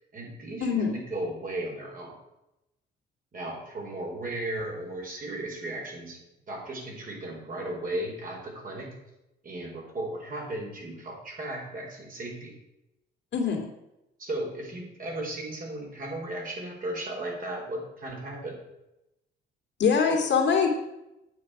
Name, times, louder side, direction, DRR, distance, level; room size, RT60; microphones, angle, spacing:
voice 1, 0.0-2.1 3.3-6.2 6.5-8.9 9.4-12.6 14.2-18.6, right 1 dB, 45° right, -1 dB, 4.6 m, -35 dB
voice 2, 0.6-0.9 13.3-13.6 19.8-20.7, left 6 dB, 65° left, 1 dB, 2.4 m, -23 dB
9.4 x 7.4 x 5.9 m, 0.91 s
cardioid pair, 90°, 20 cm